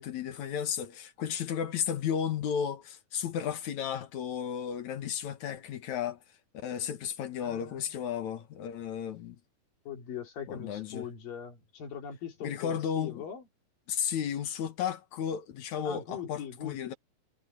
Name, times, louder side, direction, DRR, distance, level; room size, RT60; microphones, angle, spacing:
voice 1, 0.0-6.2 6.5-9.4 10.5-11.1 12.4-13.2 13.9-16.9, left 8 dB, 65° left, 2.6 m, -33 dB
voice 2, 7.3-7.9 9.9-13.4 15.8-17.0, left 8 dB, 85° left, 5.3 m, -41 dB
omnidirectional pair, 3.9 m